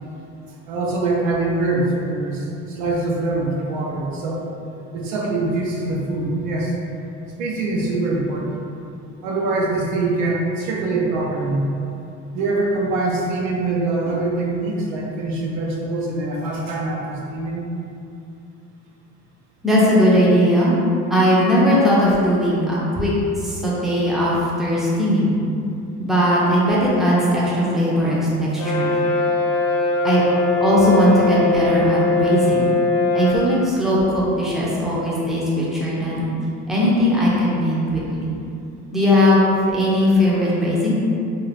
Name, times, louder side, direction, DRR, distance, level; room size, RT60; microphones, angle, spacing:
voice 1, 0.7-4.4 4.9-6.7 7.4-8.7 9.2-11.7 12.3-17.6, right 2 dB, 85° right, -2 dB, 0.7 m, -23 dB
voice 2, 19.6-20.8 21.1-23.1 23.4-25.4 26.0-29.0 30.0-30.2 30.6-32.8 33.1-36.3 36.7-38.3 38.9-40.9, equal, ahead, -7 dB, 0.5 m, -18 dB
Brass instrument, 28.6-33.5, left 3 dB, 65° left, 0.5 m, -20 dB
2.5 x 2.4 x 3.2 m, 2.6 s
cardioid pair, 130°, 32 cm